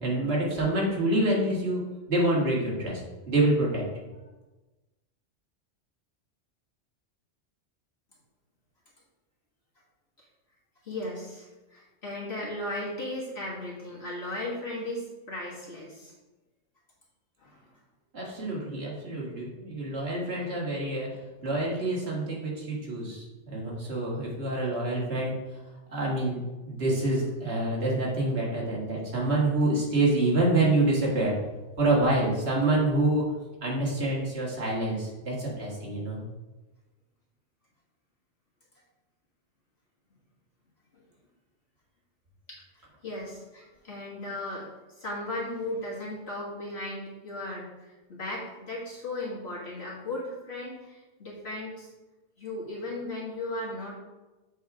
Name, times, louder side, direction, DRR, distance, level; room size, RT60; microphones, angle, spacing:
voice 1, 0.0-1.8 2.1-3.0 3.3-3.8 18.1-21.2 21.4-25.3 25.9-26.4 26.7-31.4 31.8-33.3 33.6-36.2, right 2 dB, 60° right, -4 dB, 1.9 m, -27 dB
voice 2, 10.8-16.1 17.4-17.7 40.9-41.0 42.5-42.6 43.0-44.7 45.0-51.9 52.4-53.9, left 1 dB, 60° left, -6 dB, 1.8 m, -36 dB
7.5 x 3.7 x 4.8 m, 1.1 s
omnidirectional pair, 1.2 m